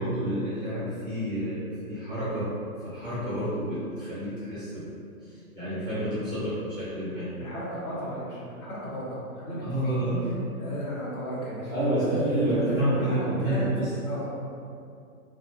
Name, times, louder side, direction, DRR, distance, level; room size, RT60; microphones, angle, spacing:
voice 1, 0.0-2.5 2.8-4.9 5.5-7.3 9.6-10.5 11.7-13.9, right 1 dB, 15° left, -16 dB, 0.5 m, -29 dB
voice 2, 7.4-10.0 10.6-11.7 12.0-13.7 14.0-14.3, equal, 75° left, -8 dB, 1.1 m, -33 dB
2.4 x 2.2 x 2.8 m, 2.4 s
hypercardioid pair, 170°, 43 cm